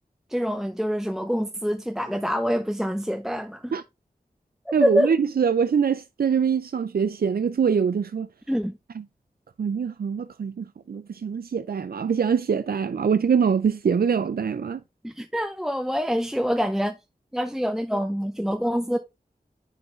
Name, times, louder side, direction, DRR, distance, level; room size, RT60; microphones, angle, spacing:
voice 1, 0.3-3.7 4.8-5.1 8.5-8.8 15.0-17.0 17.3-19.0, equal, 5° right, 0.6 m, -25 dB
voice 2, 4.7-8.3 9.6-14.8, right 6 dB, 80° right, 0.4 m, -24 dB
9.8 x 3.8 x 3.2 m
wide cardioid pair, 80°, 16 cm